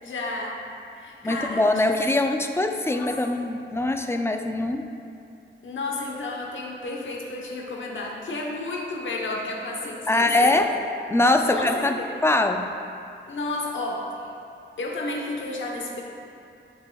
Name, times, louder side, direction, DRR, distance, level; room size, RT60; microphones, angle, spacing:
voice 1, 0.0-0.6 1.0-1.6 2.0-2.1 2.9-3.4 5.6-10.6 11.4-12.2 13.3-14.3 14.8-16.0, left 2 dB, 75° left, -1 dB, 1.0 m, -32 dB
voice 2, 1.2-4.9 10.1-10.7 11.1-12.6, left 2 dB, 15° left, 5 dB, 0.3 m, -22 dB
9.5 x 5.6 x 2.3 m, 2.5 s
wide cardioid pair, 135°, 20 cm